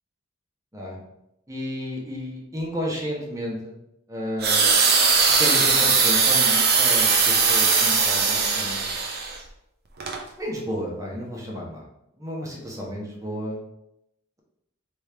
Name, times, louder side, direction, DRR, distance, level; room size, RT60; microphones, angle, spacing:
voice 1, 1.5-3.8 4.1-4.8 5.4-8.9 10.4-11.8 12.2-13.6, equal, 15° right, -3 dB, 1.1 m, -32 dB
sound 1, 4.4-9.4 10.0-10.2, right 5 dB, 50° right, 0.8 m, -20 dB
3.5 x 3.4 x 4.3 m, 0.84 s
head